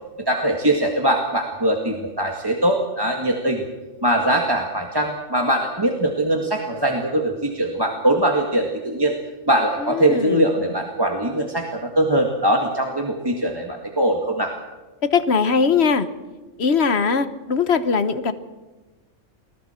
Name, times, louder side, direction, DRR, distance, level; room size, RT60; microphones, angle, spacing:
voice 1, 0.3-3.6 4.0-9.2 9.5-14.5, right 1 dB, 20° right, 1 dB, 1.9 m, -21 dB
voice 2, 9.8-10.5 15.1-16.1 16.6-18.3, left 5 dB, 55° left, 12 dB, 1.3 m, -20 dB
29.5 x 21.0 x 4.4 m, 1.2 s
omnidirectional pair, 1.3 m